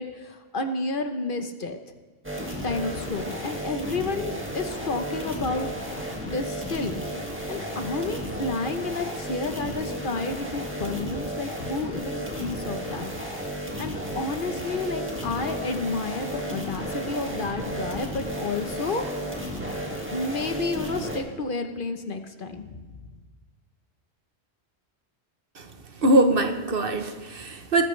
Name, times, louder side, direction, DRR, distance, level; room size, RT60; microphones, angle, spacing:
voice 1, 0.0-1.8 2.6-5.7 6.2-7.0 7.5-13.1 13.8-19.1 20.1-22.9, left 3 dB, 55° left, 6 dB, 1.1 m, -31 dB
sound 1, 2.2-21.2, equal, 10° right, 1.9 m, -33 dB
voice 2, 26.0-27.8, right 1 dB, 60° right, 6 dB, 1.2 m, -22 dB
19.5 x 13.5 x 3.3 m, 1.4 s
omnidirectional pair, 1.1 m